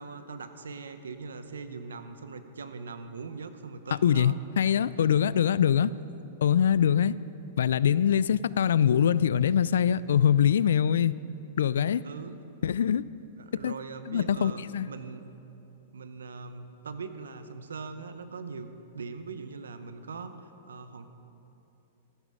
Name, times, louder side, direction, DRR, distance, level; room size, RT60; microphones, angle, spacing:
voice 1, 0.0-4.4 5.0-5.3 5.8-6.1 12.0-12.4 13.4-15.3 15.9-21.1, right 4 dB, 85° right, 10 dB, 0.8 m, -41 dB
voice 2, 4.0-5.9 6.4-7.1 7.6-11.2 11.6-12.0 12.6-13.0 13.6-13.7 14.1-14.9, left 8 dB, 80° left, 19 dB, 0.3 m, -23 dB
13.5 x 11.5 x 5.0 m, 2.9 s
hypercardioid pair, 120°, 0 cm